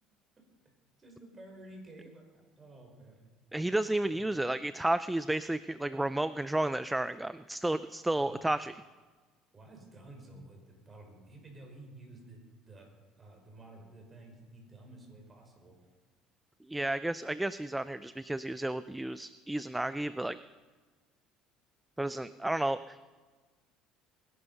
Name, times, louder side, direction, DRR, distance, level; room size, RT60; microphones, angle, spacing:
voice 1, 1.0-2.2 2.6-3.3 4.1-4.3 8.1-8.4 9.5-12.9 13.2-15.7, right 2 dB, 25° right, 2 dB, 5.1 m, -52 dB
voice 2, 3.5-8.7 16.7-20.4 22.0-23.0, right 1 dB, 5° right, 14 dB, 0.4 m, -32 dB
21.5 x 11.5 x 5.5 m, 1.4 s
supercardioid pair, 110°, 0 cm